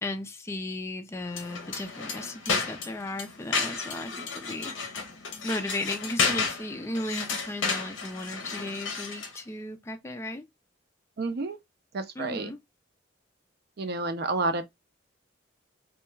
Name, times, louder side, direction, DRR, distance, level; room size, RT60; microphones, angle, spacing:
voice 1, 0.0-5.0 5.4-10.5 12.2-12.6, left 1 dB, 15° left, 0.3 m, -35 dB
sound 1, 1.3-9.4, left 4 dB, 70° left, 0.6 m, -32 dB
voice 2, 11.2-11.6 11.9-12.5 13.8-14.6, right 3 dB, 55° right, 0.4 m, -29 dB
2.2 x 2.2 x 3.0 m
head